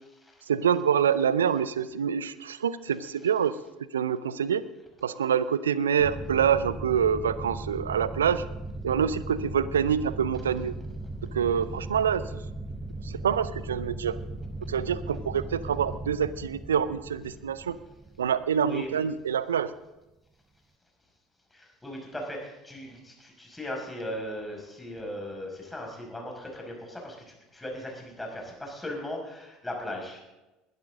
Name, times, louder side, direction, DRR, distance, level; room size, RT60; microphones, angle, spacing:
voice 1, 0.5-3.6 3.9-4.6 5.0-8.4 8.8-10.7 11.3-12.3 13.0-14.2 14.7-17.8 18.2-19.7, right 8 dB, 80° right, 16 dB, 0.6 m, -26 dB
sound 1, 6.0-19.2, right 2 dB, 20° right, 0.8 m, -38 dB
voice 2, 21.5-30.2, left 1 dB, 10° left, 0 dB, 5.8 m, -38 dB
20.5 x 12.5 x 3.8 m, 1.0 s
figure-of-eight pair, 65°, 0 cm